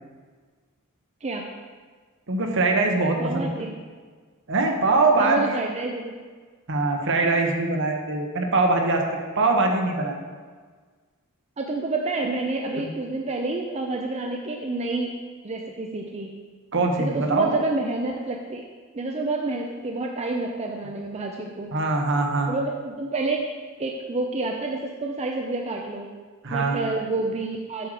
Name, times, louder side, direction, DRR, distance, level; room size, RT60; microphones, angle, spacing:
voice 1, 2.3-3.7 4.5-5.6 6.7-9.0 9.3-10.1 12.8-12.9 16.7-17.5 21.7-22.5 26.4-26.8, right 3 dB, 60° right, 2 dB, 1.2 m, -22 dB
voice 2, 3.2-3.7 5.2-6.1 11.6-15.1 15.4-16.3 17.0-18.7 18.9-21.7 22.5-23.4 23.8-26.1 26.5-27.9, right 3 dB, 30° right, 1 dB, 0.6 m, -28 dB
7.9 x 6.2 x 4.9 m, 1.5 s
head